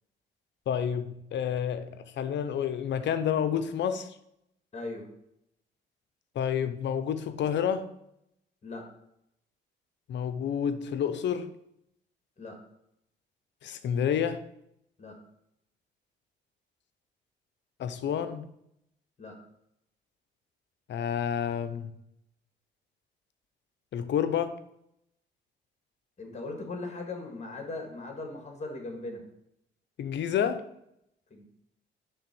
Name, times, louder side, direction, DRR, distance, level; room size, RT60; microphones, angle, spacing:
voice 1, 0.7-4.1 6.3-7.9 10.1-11.5 13.6-14.4 17.8-18.5 20.9-21.9 23.9-24.5 30.0-30.6, left 8 dB, 65° left, 11 dB, 0.7 m, -29 dB
voice 2, 4.7-5.1 8.6-8.8 12.4-12.6 15.0-15.2 19.2-19.4 26.2-29.2 31.3-31.4, left 2 dB, 35° left, 3 dB, 1.9 m, -39 dB
6.6 x 3.5 x 6.0 m, 0.77 s
cardioid pair, 90°, 20 cm